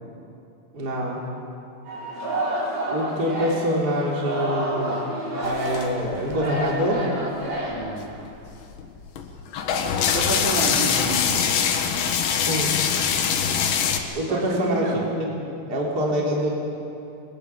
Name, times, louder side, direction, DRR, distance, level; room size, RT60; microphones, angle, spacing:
voice 1, 0.7-1.2 2.9-5.0 5.4-7.1 12.3-12.7 14.1-16.5, equal, 20° right, -3 dB, 3.5 m, -25 dB
Singing, 1.8-8.3, right 1 dB, 80° right, 9.5 m, -29 dB
sound 1, 5.4-6.8 7.4-7.5 7.7-14.0, left 7 dB, 70° left, 3.7 m, -23 dB
voice 2, 7.7-8.1 10.1-11.4 13.3-13.6 14.3-15.0, right 2 dB, 40° right, -2 dB, 4.2 m, -30 dB
29.0 x 23.0 x 7.2 m, 2.6 s
omnidirectional pair, 5.5 m